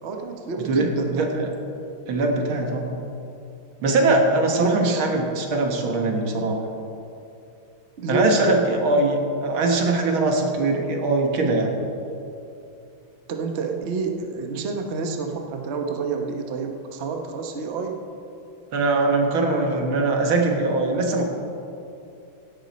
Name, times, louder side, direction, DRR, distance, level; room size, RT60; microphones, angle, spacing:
voice 1, 0.0-1.3 4.4-5.0 8.0-8.6 13.3-18.0, right 4 dB, 45° right, 3 dB, 1.0 m, -29 dB
voice 2, 0.6-1.5 2.1-3.0 3.8-6.6 8.1-11.8 18.7-21.3, right 2 dB, 80° right, 2 dB, 2.2 m, -21 dB
16.5 x 11.0 x 4.2 m, 2.7 s
omnidirectional pair, 2.2 m